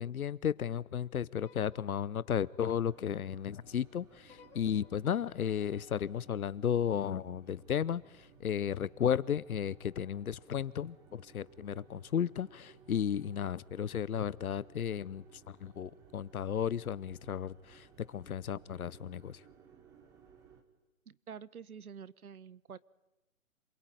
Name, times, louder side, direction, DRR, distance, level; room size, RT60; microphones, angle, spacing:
voice 1, 0.0-19.4, left 8 dB, 85° left, 0.9 m, -34 dB
sound 1, 1.4-3.6 4.3-7.4, left 6 dB, 10° left, 4.4 m, -62 dB
sound 2, 2.6-20.6, right 7 dB, 10° right, 1.2 m, -60 dB
voice 2, 21.1-22.8, right 7 dB, 85° right, 1.3 m, -48 dB
27.5 x 22.0 x 9.2 m
hypercardioid pair, 160°, 42 cm